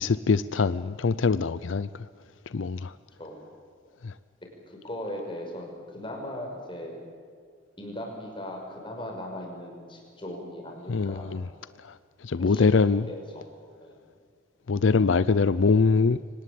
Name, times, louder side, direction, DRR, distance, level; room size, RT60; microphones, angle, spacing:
voice 1, 0.0-2.1 2.5-2.9 4.0-4.1 10.9-11.4 11.8-13.0 14.7-16.2, left 4 dB, 75° left, 0.5 m, -23 dB
voice 2, 4.7-7.0 7.8-11.3 12.4-12.7 13.1-13.4 13.8-13.9, left 1 dB, 25° left, 6.0 m, -38 dB
25.0 x 19.0 x 8.4 m
head